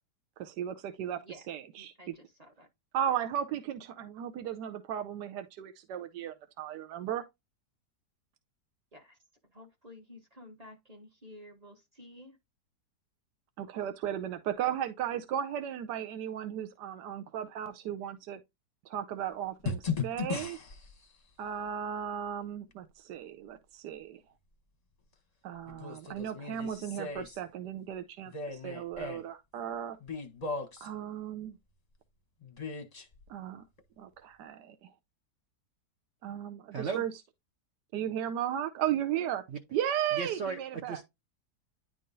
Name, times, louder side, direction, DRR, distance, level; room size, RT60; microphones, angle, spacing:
voice 1, 0.4-1.2 1.5-2.1 2.9-7.2 13.6-18.4 18.8-20.6 21.4-24.2 25.4-30.0 30.8-31.6 33.3-33.6 34.0-34.9 36.2-37.1 37.9-39.4 39.7-41.0, right 10 dB, 85° right, 1.3 m, -35 dB
voice 2, 1.8-2.7 8.9-9.2 9.5-12.4 39.2-39.4, left 1 dB, 25° right, 1.1 m, -52 dB
sound 1, 19.6-20.9 22.7-22.8 25.7-27.4 28.2-29.2 30.0-30.9 32.4-33.2 33.8-33.9, left 4 dB, 30° left, 0.7 m, -37 dB
voice 3, 36.7-37.1 40.2-40.6 40.9-41.0, right 5 dB, 55° right, 0.9 m, -35 dB
10.5 x 3.7 x 2.6 m
omnidirectional pair, 1.8 m